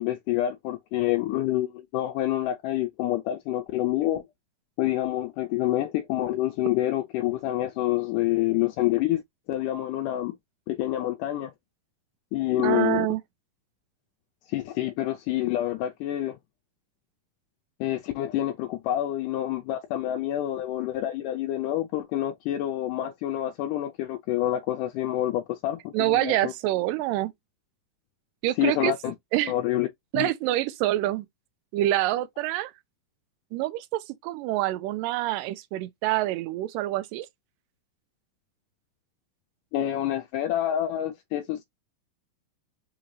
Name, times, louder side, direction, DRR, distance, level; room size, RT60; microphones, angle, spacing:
voice 1, 0.0-4.2 4.8-9.2 9.5-10.3 10.7-11.5 12.3-13.1 14.5-16.4 17.8-26.5 28.6-29.1 29.5-29.9 30.1-30.3 39.7-41.6, left 13 dB, 80° left, 1.9 m, -27 dB
voice 2, 12.6-13.2 25.9-27.3 28.4-28.9 29.3-29.5 30.1-31.3 31.7-32.7 33.5-37.3, right 15 dB, 80° right, 2.0 m, -26 dB
5.6 x 2.6 x 3.1 m
omnidirectional pair, 4.2 m